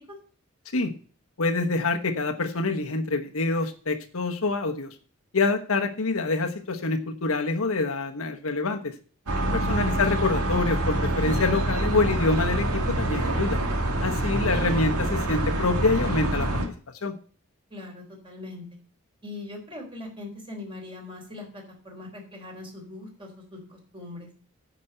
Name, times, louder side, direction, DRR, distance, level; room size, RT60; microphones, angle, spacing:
voice 1, 1.4-4.9 5.3-8.9 9.5-13.6 14.0-16.5 17.0-17.1, left 3 dB, 70° left, 5 dB, 1.1 m, -26 dB
sound 1, 9.3-16.7, right 1 dB, 90° right, 2.0 m, -26 dB
voice 2, 17.7-18.7 19.2-24.3, left 2 dB, 25° right, 0 dB, 3.8 m, -41 dB
9.9 x 5.3 x 7.8 m, 0.41 s
head